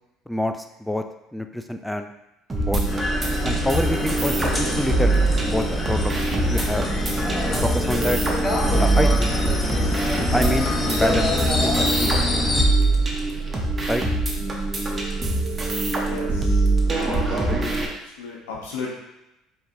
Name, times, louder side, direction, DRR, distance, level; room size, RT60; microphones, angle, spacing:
voice 1, 0.3-1.0 1.3-2.1 2.6-3.1 3.4-5.2 5.5-6.9 7.6-8.2 8.8-9.4 10.3-11.4 11.6-12.2 13.9-14.0, left 1 dB, 5° left, 6 dB, 0.4 m, -26 dB
sound 1, 2.5-17.9, right 2 dB, 25° right, 1.0 m, -24 dB
sound 2, 2.9-12.6, left 2 dB, 25° left, 1.0 m, -25 dB
sound 3, 3.8-17.8, right 12 dB, 70° right, 0.3 m, -40 dB
voice 2, 16.0-18.9, left 5 dB, 80° left, -3 dB, 1.0 m, -37 dB
4.6 x 3.4 x 2.7 m, 0.90 s
hypercardioid pair, 75°, 0 cm